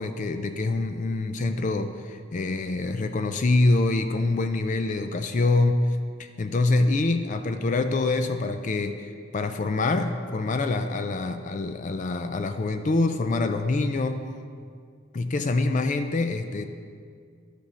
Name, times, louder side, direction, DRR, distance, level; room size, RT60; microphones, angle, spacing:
voice 1, 0.0-14.2 15.1-16.7, left 2 dB, 35° left, 8 dB, 0.4 m, -25 dB
11.5 x 5.1 x 5.6 m, 2.1 s
head